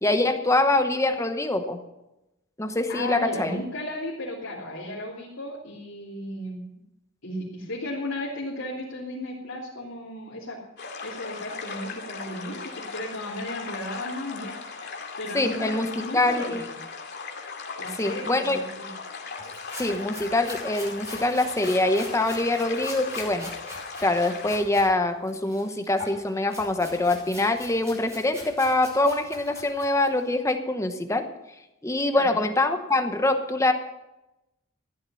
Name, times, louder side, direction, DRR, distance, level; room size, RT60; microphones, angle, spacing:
voice 1, 0.0-1.8 2.6-3.5 15.3-15.9 16.1-16.6 18.0-18.6 19.8-23.5 24.0-31.2 31.8-33.7, left 2 dB, 15° left, 6 dB, 0.9 m, -24 dB
voice 2, 2.9-6.6 7.2-10.6 11.0-14.5 15.2-16.5 17.8-18.9 32.1-32.4, left 1 dB, 70° left, -7 dB, 3.2 m, -35 dB
sound 1, 10.8-24.6, left 4 dB, 55° left, 2.4 m, -38 dB
sound 2, 19.4-24.9 25.2-30.2, left 1 dB, 15° right, 6.5 m, -43 dB
14.5 x 11.5 x 5.6 m, 0.94 s
head